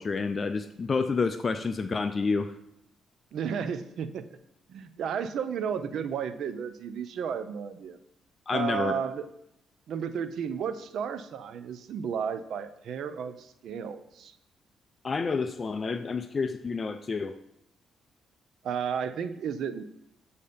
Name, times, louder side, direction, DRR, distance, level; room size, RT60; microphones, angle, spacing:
voice 1, 0.0-2.5 8.5-8.9 15.0-17.4, left 4 dB, 40° left, 9 dB, 0.3 m, -29 dB
voice 2, 3.3-4.4 4.7-8.0 8.5-9.3 9.9-14.3 18.6-19.8, right 7 dB, 70° right, 12 dB, 0.4 m, -33 dB
7.6 x 2.8 x 5.0 m, 0.79 s
cardioid pair, 75°, 0 cm